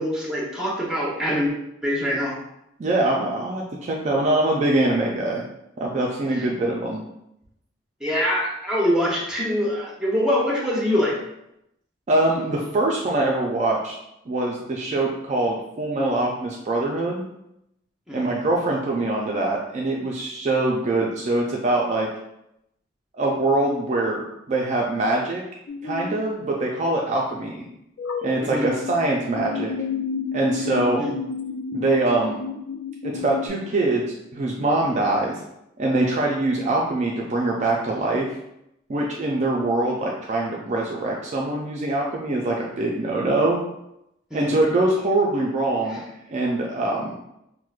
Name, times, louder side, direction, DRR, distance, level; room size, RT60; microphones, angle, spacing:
voice 1, 0.0-1.5 1.8-2.3 8.0-11.1 18.1-18.5 28.4-28.7 31.0-31.1 44.3-44.5 45.9-46.0, equal, 5° right, -4 dB, 0.7 m, -24 dB
voice 2, 2.8-5.4 5.8-7.0 12.1-13.9 14.3-17.3 18.1-22.1 23.1-25.4 25.8-27.7 28.2-29.7 30.3-31.0 31.7-32.4 33.0-35.4 35.8-38.3 38.9-43.6 44.3-46.0 46.3-47.1, right 2 dB, 35° right, -2 dB, 0.3 m, -23 dB
sound 1, 25.7-26.2 28.0-29.0 29.4-33.5, left 5 dB, 65° left, 0.3 m, -30 dB
4.5 x 2.1 x 2.3 m, 0.83 s
head